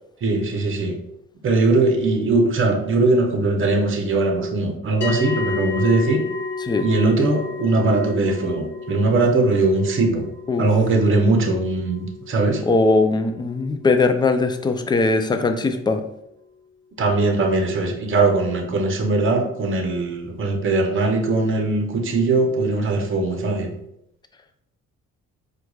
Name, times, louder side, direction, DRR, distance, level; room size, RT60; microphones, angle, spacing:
voice 1, 0.2-1.0 1.4-6.2 6.8-10.3 10.6-12.6 17.0-23.7, right 3 dB, 40° right, 3 dB, 0.7 m, -20 dB
sound 1, 5.0-15.6, left 5 dB, 40° left, 0.8 m, -32 dB
voice 2, 12.7-16.0, left 3 dB, 15° left, 7 dB, 0.3 m, -20 dB
4.5 x 2.3 x 2.3 m, 0.79 s
cardioid pair, 90°, 30 cm